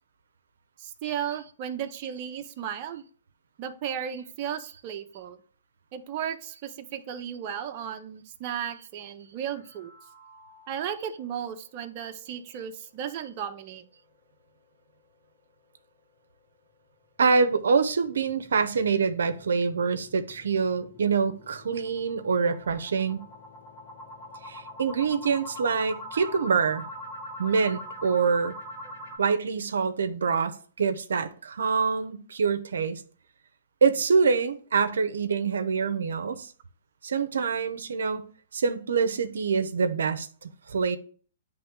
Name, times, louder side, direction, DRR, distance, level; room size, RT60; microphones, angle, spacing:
voice 1, 0.8-3.0 3.6-5.4 5.9-9.9 10.7-13.8 26.1-26.3, right 9 dB, 40° right, 0.6 m, -35 dB
sound 1, 9.6-11.0 11.4-11.5 11.9-12.0 12.5-12.6 17.4-29.2, equal, 40° left, 1.8 m, -44 dB
voice 2, 17.2-23.2 24.4-26.8 27.4-28.6 29.2-33.0 33.8-36.5 37.0-38.2 38.5-41.0, right 5 dB, 85° right, 0.6 m, -25 dB
8.8 x 3.1 x 3.6 m
hypercardioid pair, 140°, 0 cm